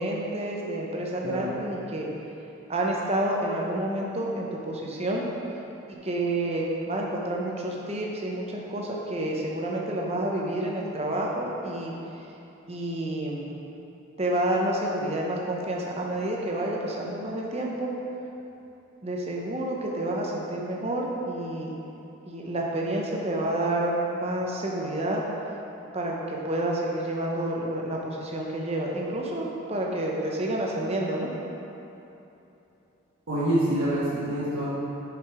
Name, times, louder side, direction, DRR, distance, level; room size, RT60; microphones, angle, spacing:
voice 1, 0.0-2.1 2.7-5.3 5.9-11.9 12.7-13.5 14.2-17.9 19.0-21.7 22.2-25.2 25.9-31.3, right 1 dB, 30° right, -2 dB, 0.8 m, -29 dB
voice 2, 33.3-34.7, right 1 dB, 80° right, -11 dB, 1.3 m, -26 dB
6.6 x 5.0 x 4.8 m, 3.0 s
head